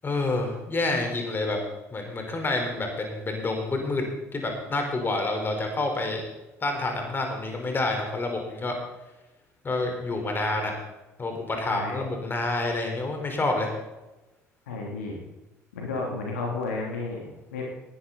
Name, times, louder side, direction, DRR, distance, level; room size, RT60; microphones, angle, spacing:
voice 1, 0.0-1.6 1.9-4.0 4.3-6.2 6.6-8.8 9.6-10.7 11.2-13.7, left 2 dB, 25° left, 3 dB, 4.4 m, -28 dB
voice 2, 11.7-12.1 14.7-15.2 15.7-17.7, left 3 dB, 70° left, -1 dB, 3.2 m, -32 dB
19.0 x 11.5 x 4.2 m, 1.0 s
figure-of-eight pair, 55°, 8 cm